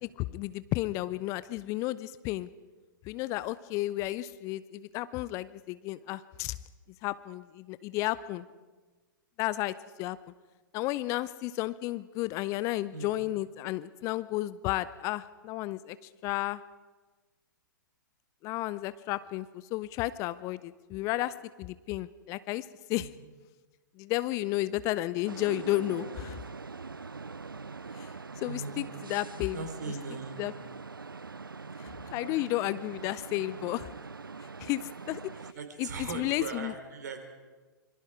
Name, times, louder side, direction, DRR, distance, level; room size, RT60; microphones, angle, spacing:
voice 1, 0.0-2.5 3.0-6.6 7.0-8.4 9.4-10.2 10.7-16.6 18.4-23.1 24.0-26.4 28.0-28.1 28.4-29.6 30.4-30.5 31.8-33.9 34.6-35.2 35.8-36.7, left 17 dB, 25° left, 16 dB, 0.5 m, -33 dB
sound 1, 25.3-35.5, right 4 dB, 80° right, 0.5 m, -43 dB
voice 2, 28.4-28.9 29.5-30.4 35.4-37.2, right 4 dB, 55° right, 6 dB, 3.7 m, -39 dB
26.0 x 23.0 x 4.8 m, 1.3 s
figure-of-eight pair, 110°, 11 cm